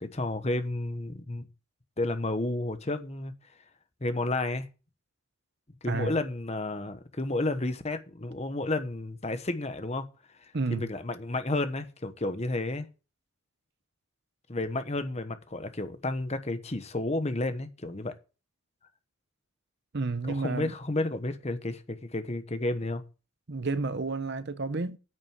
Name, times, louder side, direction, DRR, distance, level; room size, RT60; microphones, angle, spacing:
voice 1, 0.0-1.5 2.0-3.3 4.0-4.7 5.8-10.0 10.4-12.9 14.5-18.1 20.3-23.0, left 2 dB, 30° left, 1.1 m, -31 dB
voice 2, 5.9-6.2 10.5-10.9 19.9-20.7 23.5-25.0, right 3 dB, 50° right, 0.8 m, -31 dB
9.4 x 6.5 x 7.3 m
head